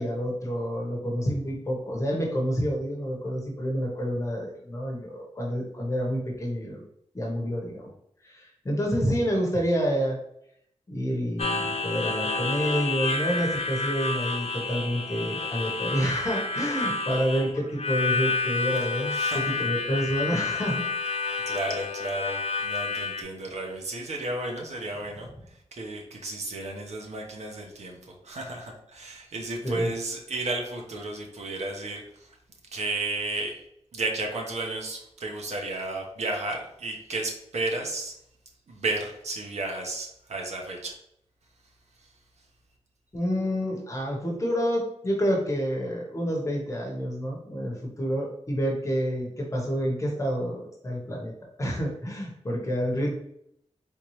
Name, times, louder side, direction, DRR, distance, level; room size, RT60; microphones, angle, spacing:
voice 1, 0.0-6.8 7.1-7.9 8.2-10.2 10.9-20.8 29.6-29.9 43.1-51.3 51.6-53.1, equal, 25° left, -1 dB, 1.0 m, -28 dB
Harmonica, 11.4-23.2, left 4 dB, 65° left, 0.6 m, -29 dB
voice 2, 19.1-19.6 21.5-32.4 32.7-33.5 33.9-38.1 38.7-40.9 42.0-42.1, right 2 dB, 80° right, 1 dB, 1.0 m, -33 dB
4.4 x 3.5 x 3.1 m, 0.73 s
wide cardioid pair, 150°, 11 cm